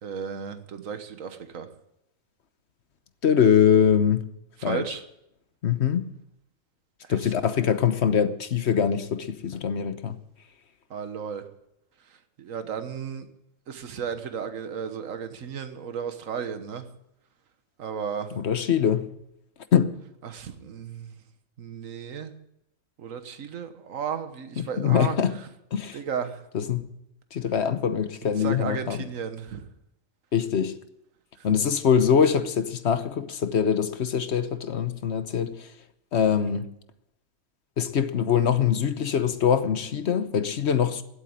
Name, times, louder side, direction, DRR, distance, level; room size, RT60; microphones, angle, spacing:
voice 1, 0.0-1.7 4.6-5.0 7.0-7.3 10.9-11.4 12.4-13.3 13.7-16.9 17.8-18.3 20.2-21.2 21.6-22.3 23.0-25.5 25.9-26.4 28.4-29.6, right 7 dB, 70° right, 1.6 m, -34 dB
voice 2, 3.2-4.2 4.6-4.8 5.6-6.1 7.1-10.2 18.3-19.1 19.7-19.9 24.6-25.3 25.7-26.0 26.5-26.9 27.3-29.0 30.3-30.8 31.4-35.7 36.1-36.7 37.8-41.0, left 8 dB, 55° left, 1.1 m, -23 dB
16.0 x 8.3 x 8.8 m
omnidirectional pair, 1.4 m